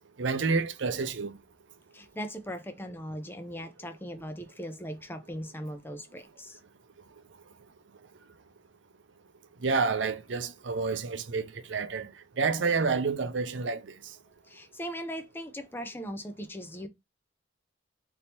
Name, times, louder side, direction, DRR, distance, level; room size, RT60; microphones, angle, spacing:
voice 1, 0.2-1.3 9.6-11.4 11.7-12.1 12.4-13.8, right 4 dB, 75° right, 0.6 m, -28 dB
voice 2, 1.9-6.6 14.5-16.9, equal, 10° left, 0.5 m, -39 dB
3.4 x 2.7 x 4.3 m
head